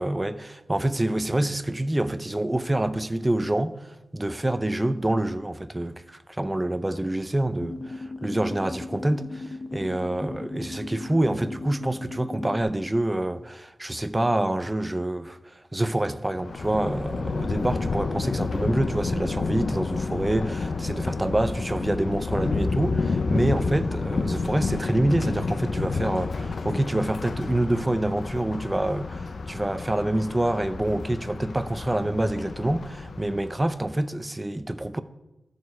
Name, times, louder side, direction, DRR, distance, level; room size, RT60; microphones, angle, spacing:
voice 1, 0.0-3.9 4.1-15.4 15.7-35.0, right 1 dB, 15° right, 0.5 m, -26 dB
sound 1, 7.6-12.6, left 2 dB, 30° left, 1.0 m, -37 dB
Thunder, 16.4-33.8, left 4 dB, 65° left, 0.6 m, -30 dB
13.5 x 6.5 x 4.7 m
wide cardioid pair, 95°, 0 cm